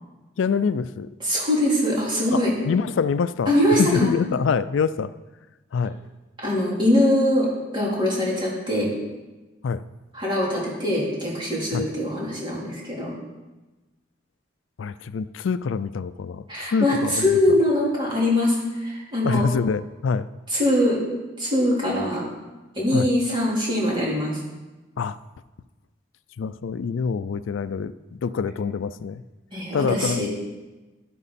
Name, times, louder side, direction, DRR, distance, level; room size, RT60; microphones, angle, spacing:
voice 1, 0.4-1.1 2.3-3.5 3.8-5.1 5.7-6.0 9.6-9.8 11.7-11.8 14.8-17.6 19.2-20.3 22.9-23.1 25.0-25.2 26.4-29.2 29.7-30.3, left 5 dB, 80° left, 14 dB, 0.4 m, -25 dB
voice 2, 1.2-2.5 3.5-4.1 6.4-7.5 7.7-8.9 10.1-13.2 16.5-19.4 20.5-21.0 21.4-22.3 22.8-24.4 29.5-30.3, left 1 dB, 25° right, -5 dB, 3.8 m, -22 dB
11.5 x 11.0 x 4.2 m, 1.1 s
head